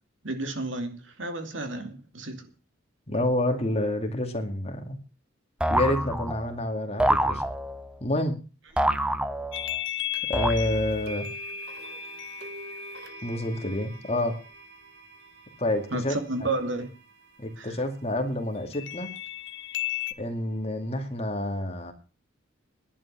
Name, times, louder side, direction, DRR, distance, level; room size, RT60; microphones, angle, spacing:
voice 1, 0.2-2.4 15.9-16.9 17.6-17.8, right 2 dB, 70° right, 7 dB, 2.5 m, -32 dB
voice 2, 3.1-5.0 5.7-7.4 8.0-8.4 10.3-11.3 13.2-14.4 15.6-16.2 16.4-16.5 17.4-19.1 20.2-21.9, left 1 dB, 30° left, 4 dB, 2.4 m, -28 dB
sound 1, 5.6-6.6 7.0-7.9 8.8-9.8 10.3-11.0, right 1 dB, 5° right, 0.7 m, -26 dB
sound 2, 9.5-14.1 18.7-20.1, left 14 dB, 65° left, 0.9 m, -35 dB
sound 3, 10.1-10.2 11.1-19.1, right 1 dB, 55° right, 1.8 m, -45 dB
11.0 x 8.7 x 7.4 m, 0.34 s
head